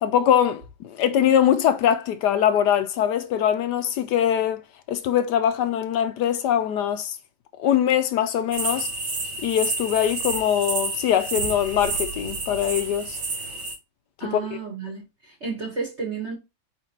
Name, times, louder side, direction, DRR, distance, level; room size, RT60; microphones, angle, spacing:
voice 1, 0.0-4.6 4.9-7.2 7.6-8.9 9.4-13.2 14.2-14.4, left 10 dB, 75° left, 1.0 m, -22 dB
sound 1, 8.5-13.7, right 3 dB, 85° right, 2.5 m, -30 dB
voice 2, 14.2-16.3, right 5 dB, 35° right, 1.9 m, -32 dB
4.9 x 4.2 x 4.5 m
omnidirectional pair, 2.1 m